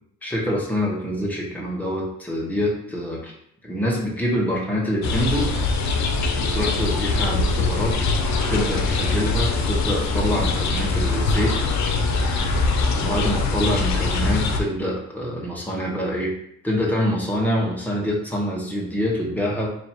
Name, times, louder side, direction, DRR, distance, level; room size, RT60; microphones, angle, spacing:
voice 1, 0.2-3.3 3.6-5.5 6.4-8.0 8.5-11.6 12.9-16.3 16.6-19.7, equal, 5° left, -3 dB, 1.1 m, -25 dB
sound 1, 5.0-14.6, left 3 dB, 65° left, 0.7 m, -22 dB
3.2 x 2.7 x 4.3 m, 0.70 s
cardioid pair, 90°, 30 cm